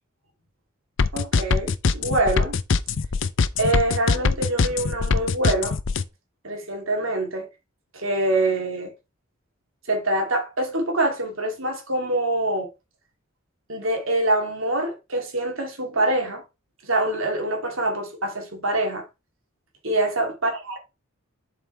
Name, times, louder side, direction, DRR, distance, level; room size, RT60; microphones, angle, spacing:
sound 1, 1.0-6.0, left 4 dB, 65° left, 0.6 m, -22 dB
voice 1, 1.1-2.6 3.6-5.8 6.4-7.5 7.9-8.9 9.9-12.7 13.7-16.4 16.8-19.1 19.8-20.8, right 1 dB, 75° right, 2.7 m, -25 dB
7.5 x 5.6 x 3.3 m
head